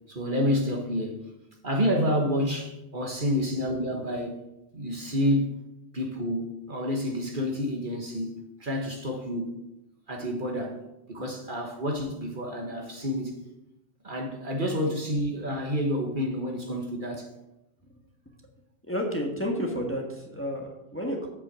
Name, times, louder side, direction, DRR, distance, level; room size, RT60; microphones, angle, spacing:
voice 1, 0.1-1.2 1.6-4.4 4.7-5.5 5.9-8.3 8.6-9.6 10.1-10.8 11.1-13.4 14.0-17.3, equal, 50° right, 1.6 m, -29 dB
voice 2, 18.8-21.3, equal, 10° left, 1.5 m, -31 dB
8.0 x 5.7 x 7.6 m
omnidirectional pair, 1.2 m